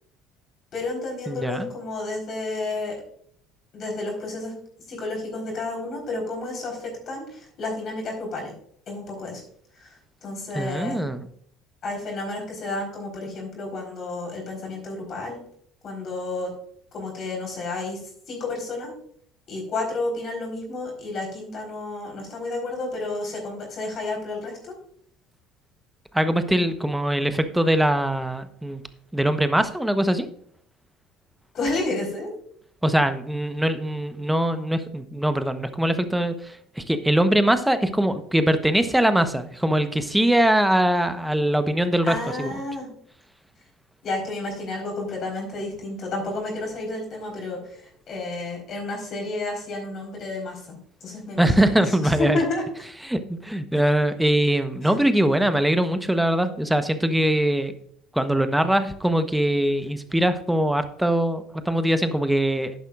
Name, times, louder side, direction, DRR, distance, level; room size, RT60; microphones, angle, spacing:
voice 1, 0.7-3.0 3.7-4.5 4.9-8.5 8.9-9.4 9.7-11.0 11.8-15.4 15.8-16.5 16.9-18.0 18.3-18.9 19.5-24.7 31.5-32.3 42.1-42.9 44.0-52.6 54.8-54.9, left 2 dB, 45° left, 0 dB, 4.2 m, -31 dB
voice 2, 1.3-1.7 10.5-11.2 26.1-28.8 29.1-30.3 32.8-42.5 51.4-52.4 53.0-57.7 58.1-62.7, right 1 dB, 5° right, 11 dB, 1.0 m, -22 dB
11.0 x 10.5 x 2.5 m, 0.63 s
figure-of-eight pair, 60°, 0 cm